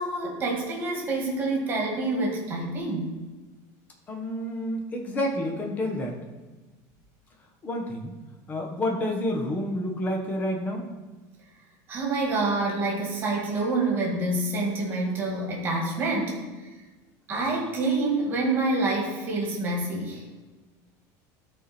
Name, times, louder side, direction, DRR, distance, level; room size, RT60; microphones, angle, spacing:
voice 1, 0.0-3.2 11.9-16.4 17.3-20.2, right 2 dB, 20° right, -1 dB, 2.0 m, -27 dB
voice 2, 4.1-6.2 7.6-8.1 8.5-10.8, left 1 dB, 20° left, 1 dB, 1.2 m, -29 dB
12.5 x 4.4 x 4.3 m, 1.2 s
cardioid pair, 175°, 9 cm